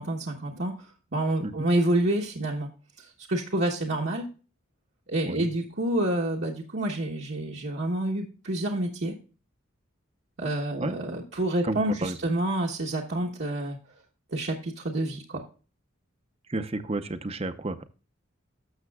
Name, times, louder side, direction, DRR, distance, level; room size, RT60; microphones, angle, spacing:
voice 1, 0.0-2.7 3.0-4.2 5.1-9.1 10.4-13.8 14.3-15.4, right 1 dB, 60° right, -2 dB, 1.1 m, -28 dB
voice 2, 11.6-12.2 16.5-17.8, right 2 dB, 30° right, 11 dB, 0.6 m, -31 dB
12.5 x 6.8 x 2.3 m, 0.36 s
head